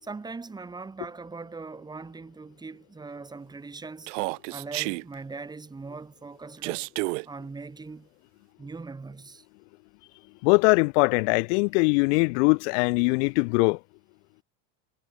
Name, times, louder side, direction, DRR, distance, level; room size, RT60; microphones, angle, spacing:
voice 1, 0.0-4.1 4.5-6.9 7.3-8.1 8.6-9.5, right 4 dB, 10° right, 4.0 m, -40 dB
Human voice, 4.1-5.0 6.6-7.2, right 28 dB, 65° right, 0.7 m, -30 dB
voice 2, 10.4-13.8, left 31 dB, 60° left, 0.9 m, -21 dB
supercardioid pair, 160°, 39 cm